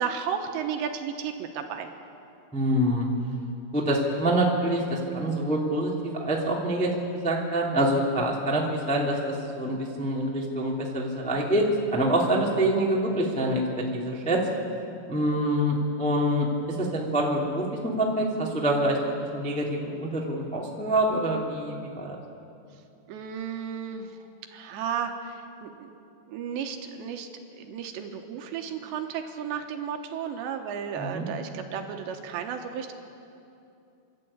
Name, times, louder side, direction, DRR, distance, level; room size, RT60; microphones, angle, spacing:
voice 1, 0.0-1.9 23.1-24.2 24.5-25.9 26.3-32.9, right 7 dB, 75° right, 5 dB, 3.0 m, -33 dB
voice 2, 2.5-3.1 3.7-5.9 6.2-6.9 7.2-14.4 15.1-19.0 19.3-22.1 31.0-31.2, right 1 dB, 5° left, -3 dB, 0.5 m, -26 dB
30.0 x 12.0 x 8.8 m, 2.7 s
omnidirectional pair, 5.6 m